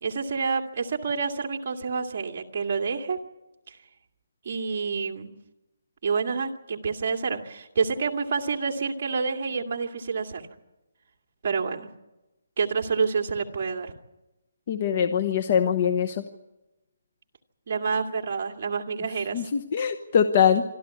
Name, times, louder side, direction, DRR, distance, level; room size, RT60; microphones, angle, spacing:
voice 1, 0.0-3.2 3.7-3.8 4.4-5.3 6.0-10.4 11.4-11.9 12.6-13.9 17.7-19.4, right 5 dB, 40° right, 2 dB, 2.3 m, -28 dB
voice 2, 14.7-16.2 19.3-20.6, left 8 dB, 35° left, 8 dB, 1.0 m, -23 dB
26.0 x 13.0 x 9.6 m, 0.99 s
hypercardioid pair, 170°, 0 cm